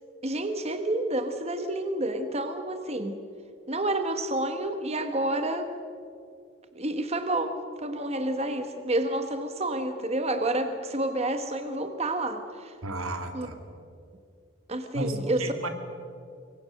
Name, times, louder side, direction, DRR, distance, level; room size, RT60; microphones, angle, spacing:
voice 1, 0.2-3.2 3.7-5.7 6.7-12.7 13.3-13.5 14.7-15.7, right 1 dB, 30° right, 7 dB, 1.3 m, -29 dB
voice 2, 12.8-13.5 14.9-15.7, right 1 dB, 80° right, 6 dB, 2.6 m, -33 dB
26.5 x 22.5 x 6.5 m, 2.4 s
head